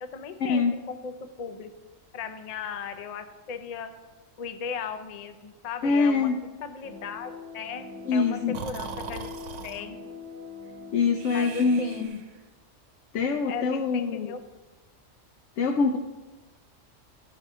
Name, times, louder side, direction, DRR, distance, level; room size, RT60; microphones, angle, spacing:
voice 1, 0.0-1.7 2.1-3.9 4.4-6.3 6.6-9.3 9.6-10.0 11.3-12.0 13.5-14.4, left 6 dB, 50° left, 9 dB, 0.5 m, -37 dB
voice 2, 5.8-6.4 8.0-8.6 10.9-12.2 13.1-14.3 15.6-16.0, left 4 dB, 75° left, 4 dB, 0.9 m, -24 dB
sound 1, 6.8-12.1, left 4 dB, 45° right, 0.9 m, -43 dB
Breathing, 8.5-9.9 11.2-12.4, right 6 dB, 70° right, 1.0 m, -40 dB
12.0 x 5.4 x 3.7 m, 1.2 s
omnidirectional pair, 1.3 m